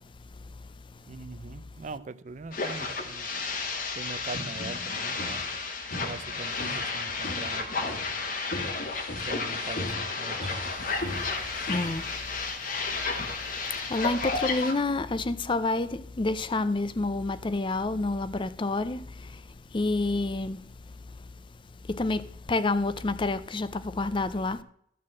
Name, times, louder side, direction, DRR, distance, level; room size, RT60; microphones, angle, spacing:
voice 1, 1.0-3.3 3.9-5.4 5.9-8.0 9.2-10.6, right 3 dB, 45° right, 0.5 m, -42 dB
sound 1, 2.3-12.0, left 1 dB, 75° left, 1.7 m, -40 dB
sound 2, 2.5-14.7, left 4 dB, 50° left, 1.3 m, -32 dB
voice 2, 11.1-12.5 12.8-12.9 13.5-20.6 21.1-21.2 21.8-24.6, left 2 dB, 30° left, 0.5 m, -29 dB
12.5 x 4.3 x 7.4 m
head